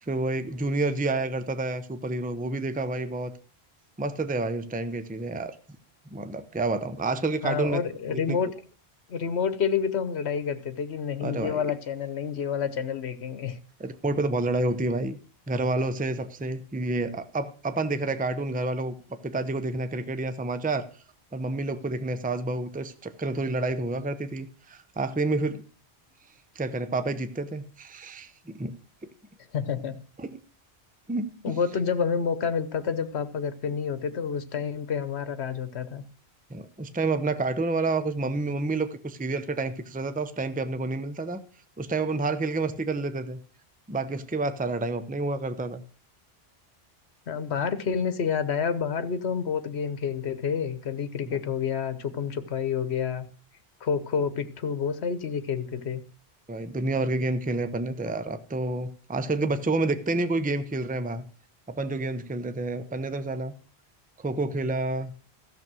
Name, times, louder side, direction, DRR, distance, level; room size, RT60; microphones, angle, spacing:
voice 1, 0.0-3.3 4.0-5.6 6.1-7.8 8.1-8.4 11.2-11.6 13.8-15.2 15.5-20.9 21.3-25.6 26.5-28.8 30.2-30.4 31.1-31.6 36.5-41.4 41.8-43.4 43.9-45.8 51.2-51.4 56.5-61.2 61.7-63.5 64.2-65.1, right 2 dB, 10° right, 0.6 m, -29 dB
voice 2, 7.4-8.5 9.1-13.6 29.5-30.0 31.4-36.0 47.3-53.3 53.8-56.0, left 6 dB, 80° left, 1.3 m, -29 dB
14.0 x 6.9 x 6.1 m
omnidirectional pair, 1.1 m